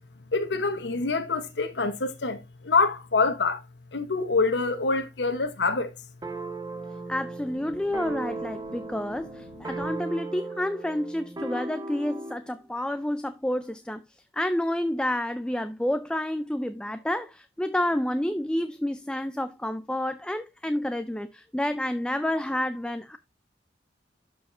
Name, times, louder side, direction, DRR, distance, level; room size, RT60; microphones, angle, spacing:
voice 1, 0.3-3.6 3.9-5.9 8.7-8.8, left 4 dB, 85° left, 0.9 m, -26 dB
sound 1, 6.2-12.5, right 3 dB, 20° right, 0.7 m, -37 dB
voice 2, 7.1-14.0 14.3-23.2, left 1 dB, 5° left, 0.3 m, -29 dB
12.5 x 4.8 x 2.5 m
head